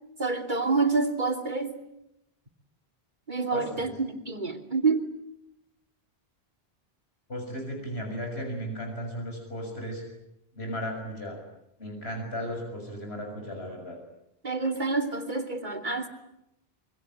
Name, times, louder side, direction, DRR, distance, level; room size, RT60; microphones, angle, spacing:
voice 1, 0.2-1.8 3.3-5.1 14.4-16.1, right 4 dB, 50° right, 4 dB, 3.0 m, -27 dB
voice 2, 3.5-3.9 7.3-10.0 10.6-11.4 11.8-14.0, equal, 85° left, 3 dB, 6.9 m, -35 dB
26.0 x 24.5 x 9.1 m, 0.81 s
omnidirectional pair, 1.0 m